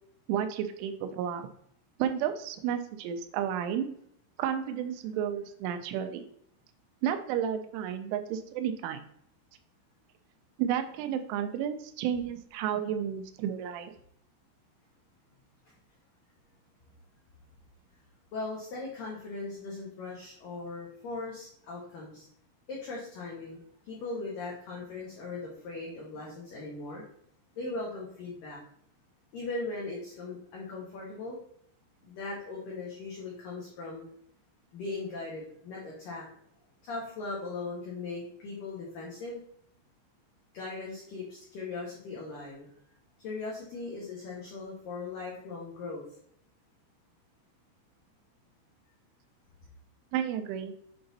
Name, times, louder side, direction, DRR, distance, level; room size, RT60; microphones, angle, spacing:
voice 1, 0.3-1.5 2.0-3.9 4.4-6.3 7.0-9.0 10.6-13.9 50.1-50.7, right 9 dB, 80° right, 8 dB, 2.9 m, -32 dB
voice 2, 18.3-22.3 22.7-27.0 27.6-28.6 29.3-31.4 32.0-34.0 34.7-36.2 36.8-39.4 40.5-42.7 43.2-46.0, left 3 dB, 75° left, -4 dB, 2.0 m, -39 dB
7.8 x 3.8 x 4.0 m, 0.68 s
omnidirectional pair, 6.0 m